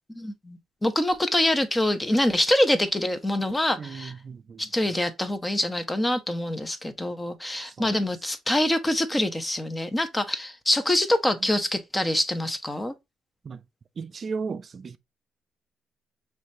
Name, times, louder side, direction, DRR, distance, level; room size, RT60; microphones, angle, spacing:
voice 1, 0.2-4.1 4.6-12.9, left 1 dB, 15° left, 0.8 m, -25 dB
voice 2, 3.8-4.9 7.6-8.0 13.4-13.6 14.0-15.0, right 5 dB, 45° right, 0.4 m, -36 dB
4.8 x 3.3 x 2.7 m
cardioid pair, 90°, 0 cm